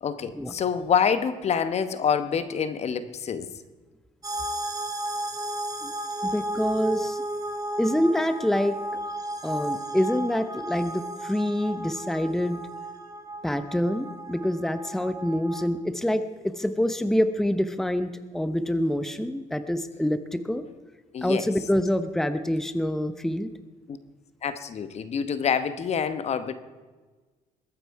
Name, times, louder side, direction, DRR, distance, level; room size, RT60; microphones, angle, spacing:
voice 1, 0.0-3.5 21.1-21.4 23.9-24.0 24.4-26.5, left 7 dB, 50° left, 12 dB, 1.1 m, -26 dB
sound 1, 4.2-15.7, right 1 dB, 25° right, 1.9 m, -34 dB
voice 2, 6.3-7.2 7.8-8.8 9.4-12.6 13.4-20.7 21.2-23.5, equal, 5° left, 10 dB, 0.8 m, -26 dB
21.5 x 9.0 x 4.7 m, 1.3 s
cardioid pair, 100°, 15 cm